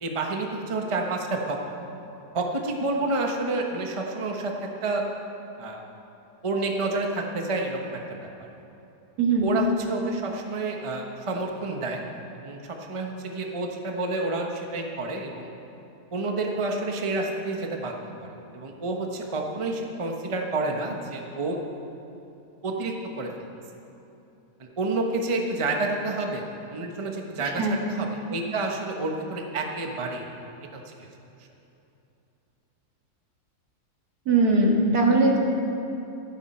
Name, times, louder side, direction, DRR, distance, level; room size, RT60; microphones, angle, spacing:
voice 1, 0.0-1.6 2.3-5.0 5.6-5.8 6.4-8.5 9.4-12.0 12.3-15.5 16.1-21.6 22.6-23.3 24.6-30.3 30.7-31.1, right 2 dB, 25° right, 2 dB, 0.9 m, -29 dB
voice 2, 34.3-35.4, right 2 dB, 75° right, 0 dB, 2.2 m, -20 dB
15.0 x 12.5 x 4.4 m, 2.9 s
omnidirectional pair, 1.7 m